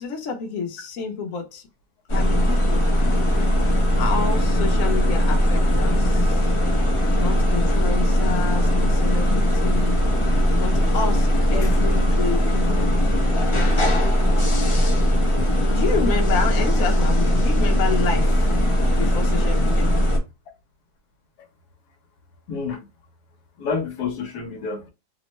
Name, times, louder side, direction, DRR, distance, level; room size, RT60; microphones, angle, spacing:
voice 1, 0.0-1.6 2.1-2.9 4.0-6.5 7.2-10.0 10.6-12.9 15.7-18.5 18.9-20.0, left 5 dB, 60° left, 1.1 m, -29 dB
sound 1, 2.1-20.2, equal, 40° left, 0.4 m, -19 dB
voice 2, 22.5-22.8 23.6-24.9, left 5 dB, 80° left, 1.3 m, -29 dB
3.0 x 2.1 x 2.9 m
omnidirectional pair, 1.7 m